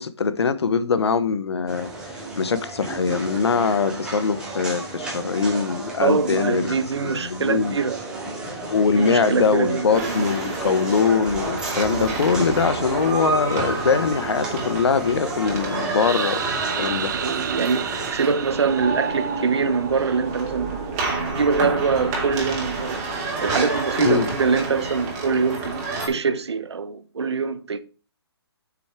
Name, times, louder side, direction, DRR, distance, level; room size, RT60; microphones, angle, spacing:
voice 1, 0.0-1.9 2.4-6.8 7.0-7.8 8.7-16.4 16.8-17.1 24.0-24.3, left 5 dB, 75° left, 1.0 m, -22 dB
sound 1, 1.7-18.1, right 2 dB, 5° right, 2.3 m, -34 dB
voice 2, 6.0-8.0 8.8-10.2 17.1-27.8, right 5 dB, 80° right, 1.0 m, -24 dB
sound 2, 9.9-26.1, right 3 dB, 25° right, 2.7 m, -29 dB
sound 3, 16.0-19.8, right 9 dB, 45° right, 0.5 m, -32 dB
7.1 x 6.2 x 4.5 m
hypercardioid pair, 155°, 14 cm